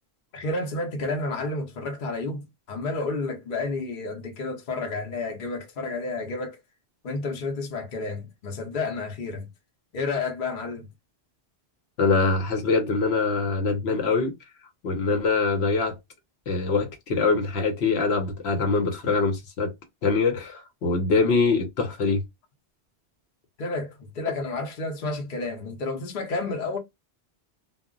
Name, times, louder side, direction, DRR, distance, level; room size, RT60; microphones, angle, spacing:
voice 1, 0.3-6.6 7.0-9.5 9.9-10.9 23.6-26.8, left 3 dB, 55° left, 0.8 m, -31 dB
voice 2, 12.0-14.3 14.8-16.0 16.5-19.7 20.0-22.2, left 4 dB, 80° left, 1.0 m, -23 dB
2.2 x 2.0 x 3.6 m
omnidirectional pair, 1.1 m